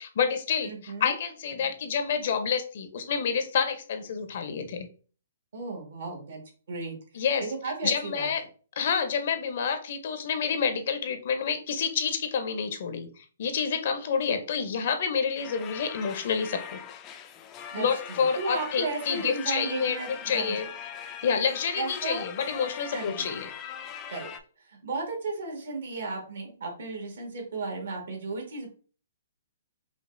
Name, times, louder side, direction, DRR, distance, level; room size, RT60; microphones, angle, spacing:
voice 1, 0.0-4.9 7.1-7.5 7.8-8.4 8.8-13.1 13.4-16.8 17.8-20.7 21.2-23.5, left 6 dB, 55° left, 8 dB, 0.7 m, -28 dB
voice 2, 0.6-1.1 5.5-6.4 6.7-8.3 17.7-20.6 21.8-22.2 22.9-23.3 24.1-24.3 24.7-28.7, right 3 dB, 70° right, 0 dB, 1.7 m, -35 dB
sound 1, 15.4-24.4, left 9 dB, 25° left, 0.4 m, -41 dB
5.0 x 2.4 x 2.6 m, 0.40 s
hypercardioid pair, 150°, 0 cm